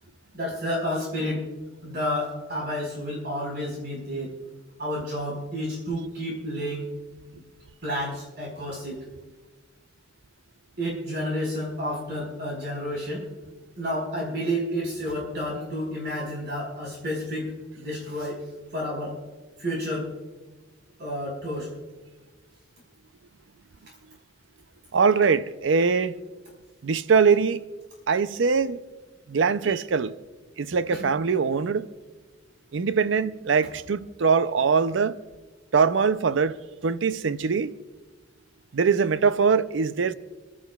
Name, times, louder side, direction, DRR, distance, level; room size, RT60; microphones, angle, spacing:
voice 1, 0.3-1.4 1.8-4.3 4.8-6.9 7.8-9.0 10.8-13.3 13.7-17.5 17.8-18.4 18.7-19.2 19.6-20.1 21.0-21.7 30.9-31.1, equal, 60° right, 4.6 m, -30 dB
voice 2, 24.9-26.2 26.8-27.7 28.1-28.8 29.3-30.2 30.6-31.9 32.7-35.2 35.7-37.7 38.7-40.1, right 5 dB, 85° right, 0.5 m, -22 dB
28.0 x 12.0 x 2.3 m
head